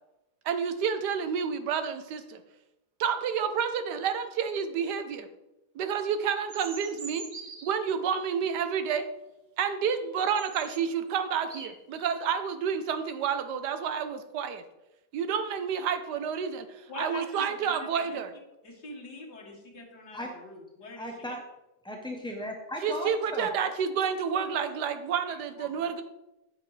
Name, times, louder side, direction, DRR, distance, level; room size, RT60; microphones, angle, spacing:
voice 1, 0.4-2.4 3.0-5.3 5.7-7.2 7.6-9.1 9.6-14.6 15.1-18.3 22.8-26.0, right 7 dB, 80° right, 9 dB, 1.4 m, -29 dB
sound 1, 6.5-7.8 9.9-10.0 10.3-10.8 11.3-12.0, right 4 dB, 30° right, 0.8 m, -43 dB
voice 2, 16.9-18.2 18.6-21.1 24.7-24.8 25.3-25.9, left 2 dB, 80° left, -2 dB, 2.3 m, -44 dB
voice 3, 21.0-21.4 21.8-23.5, equal, 5° left, 1 dB, 0.4 m, -36 dB
9.5 x 8.1 x 3.2 m, 0.94 s
omnidirectional pair, 1.8 m